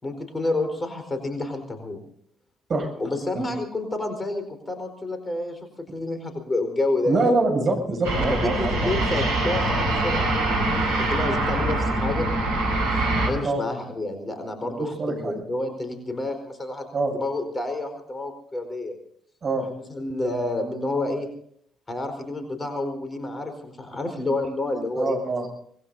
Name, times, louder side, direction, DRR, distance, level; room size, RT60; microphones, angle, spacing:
voice 1, 0.0-2.0 3.0-7.3 8.3-12.3 12.9-16.9 17.1-19.0 19.6-21.3 21.9-25.2, left 2 dB, 25° left, 7 dB, 4.4 m, -29 dB
voice 2, 7.1-9.0 13.4-13.6 14.6-15.4 16.9-17.1 19.4-19.7 25.0-25.5, right 2 dB, 40° right, 2 dB, 7.2 m, -25 dB
sound 1, 8.0-13.3, right 2 dB, 75° right, 5.0 m, -24 dB
25.0 x 21.0 x 2.7 m, 0.67 s
figure-of-eight pair, 45°, 0 cm